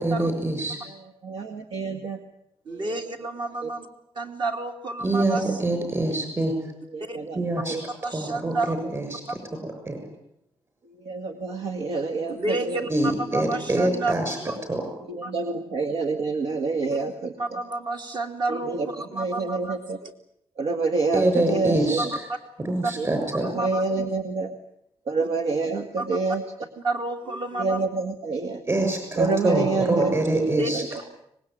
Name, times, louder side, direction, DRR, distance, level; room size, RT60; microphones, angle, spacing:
voice 1, 0.0-0.8 5.0-6.5 7.3-7.8 8.1-9.4 9.6-10.0 12.9-14.4 14.7-14.9 21.1-22.1 22.6-23.5 28.7-30.8, right 1 dB, 25° right, 5 dB, 6.7 m, -25 dB
voice 2, 0.9-2.2 2.7-3.0 3.6-3.7 5.4-5.6 6.9-7.9 11.0-12.9 15.1-17.6 18.5-18.9 19.1-20.0 20.6-22.0 23.0-24.5 25.1-26.4 27.6-28.6 29.2-30.9, right 3 dB, 75° right, 6 dB, 1.9 m, -28 dB
voice 3, 2.7-3.9 4.1-5.4 7.1-7.2 8.0-8.7 9.3-9.4 12.3-14.1 14.4-14.6 15.2-15.3 16.9-17.0 17.4-19.8 20.0-20.1 22.0-22.2 22.8-22.9 23.5-23.8 26.0-26.1 26.8-27.8 30.6-31.0, right 2 dB, 50° right, 4 dB, 2.9 m, -30 dB
25.0 x 20.0 x 9.2 m, 0.76 s
cardioid pair, 135°, 10 cm